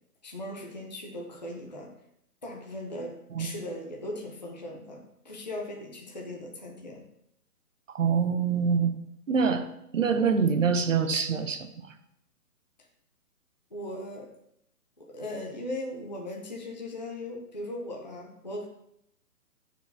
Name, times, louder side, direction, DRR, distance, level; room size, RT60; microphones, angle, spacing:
voice 1, 0.2-1.9 2.4-7.0 13.7-14.3 15.0-18.7, left 1 dB, 30° left, -1 dB, 0.5 m, -38 dB
voice 2, 7.9-8.9 9.3-9.7 9.9-11.9, right 6 dB, 55° right, 9 dB, 0.7 m, -25 dB
9.1 x 4.6 x 2.7 m, 0.77 s
hypercardioid pair, 165°, 47 cm